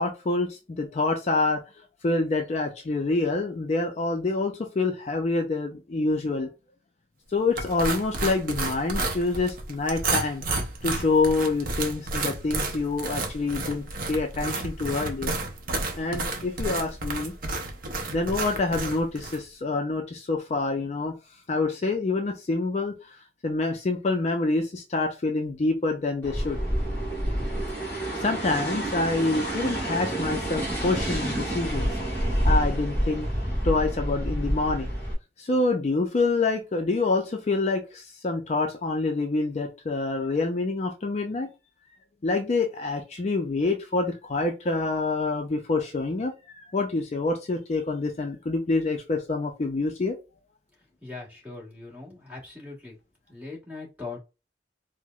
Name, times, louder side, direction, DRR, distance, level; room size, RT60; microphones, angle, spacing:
voice 1, 0.0-1.6 2.0-6.5 7.3-10.4 10.8-15.4 16.0-17.3 18.1-21.1 21.5-23.2 23.4-26.6 28.2-33.3 33.6-34.9 35.4-41.5 42.2-50.2, left 3 dB, 35° left, 4 dB, 0.4 m, -27 dB
sound 1, 7.6-19.4, right 3 dB, 50° right, 0.6 m, -31 dB
sound 2, 26.2-35.1, equal, 10° left, 1.4 m, -28 dB
voice 2, 51.0-53.0 53.3-54.2, left 3 dB, 10° right, -3 dB, 1.2 m, -40 dB
4.4 x 2.0 x 2.3 m, 0.28 s
head